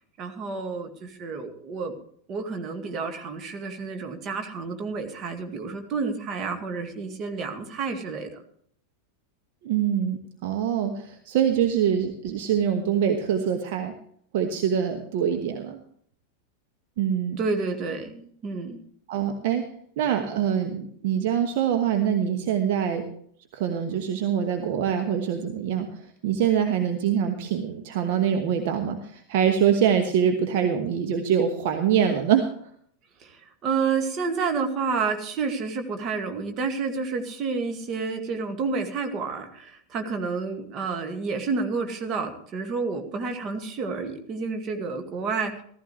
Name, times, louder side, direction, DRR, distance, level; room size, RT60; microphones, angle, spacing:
voice 1, 0.2-1.9 2.3-8.3 17.4-18.8 33.2-45.6, right 4 dB, 35° right, 5 dB, 2.1 m, -30 dB
voice 2, 9.6-13.9 14.3-15.8 17.0-17.4 19.1-19.6 20.0-23.0 23.5-25.9 26.2-32.5, right 8 dB, 50° right, 6 dB, 1.2 m, -24 dB
15.0 x 15.0 x 3.3 m, 0.62 s
figure-of-eight pair, 90°, 0 cm